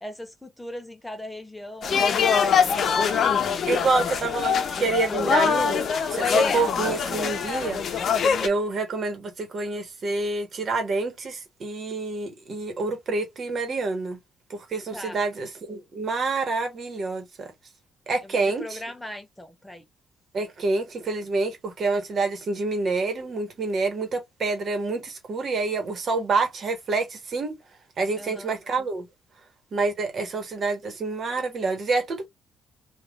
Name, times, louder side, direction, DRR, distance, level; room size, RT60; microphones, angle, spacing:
voice 1, 0.0-2.8 3.7-4.0 14.9-15.2 18.2-19.8 28.1-28.6, left 1 dB, 5° left, 0.6 m, -40 dB
sound 1, 1.8-8.5, left 6 dB, 60° left, 0.6 m, -23 dB
voice 2, 3.7-5.8 6.1-8.0 8.4-14.2 14.5-17.5 18.1-18.8 20.3-27.6 28.0-29.0 29.7-32.3, right 3 dB, 50° right, 1.1 m, -27 dB
3.3 x 2.4 x 2.3 m
cardioid pair, 90°, 0 cm